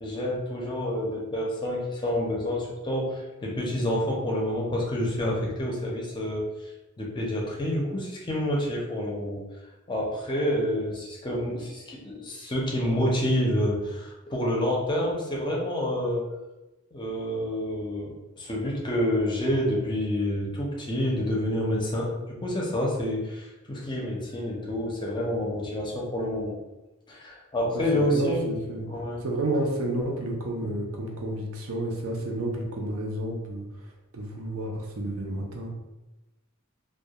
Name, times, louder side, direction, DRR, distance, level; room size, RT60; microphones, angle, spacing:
voice 1, 0.0-6.7 7.0-9.4 9.9-16.2 16.9-26.6 27.1-28.5 28.9-29.2 30.6-30.7, left 1 dB, 20° left, -2 dB, 0.5 m, -28 dB
voice 2, 27.7-28.9 29.2-33.7 34.1-35.7, right 1 dB, 80° right, 0 dB, 0.5 m, -30 dB
2.2 x 2.2 x 2.8 m, 1.0 s
head